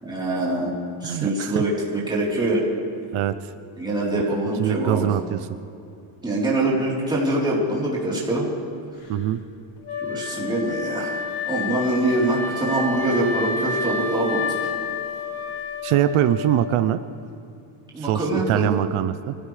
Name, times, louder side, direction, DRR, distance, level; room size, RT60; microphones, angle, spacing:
voice 1, 0.0-0.7 1.0-2.6 3.8-5.1 6.2-8.5 10.0-11.1 11.5-14.4 17.9-18.7, right 1 dB, 10° right, -6 dB, 3.7 m, -24 dB
voice 2, 1.0-1.6 3.1-3.5 4.6-5.4 9.1-9.4 15.8-17.0 18.0-19.3, right 12 dB, 85° right, 12 dB, 0.7 m, -23 dB
Wind instrument woodwind instrument, 9.9-16.9, left 4 dB, 55° left, 2.0 m, -29 dB
24.0 x 16.0 x 3.3 m, 2.6 s
cardioid pair, 160°, 49 cm